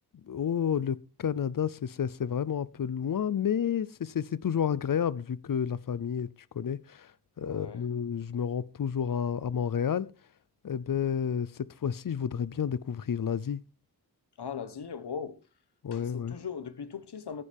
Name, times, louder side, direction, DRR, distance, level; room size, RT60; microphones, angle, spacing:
voice 1, 0.2-6.3 6.5-10.1 10.6-13.6 15.8-16.4, left 8 dB, 55° left, 0.6 m, -30 dB
voice 2, 7.4-7.9 14.4-15.4 15.9-17.4, left 6 dB, 75° left, 1.2 m, -39 dB
15.0 x 9.8 x 3.5 m
wide cardioid pair, 95°, 40 cm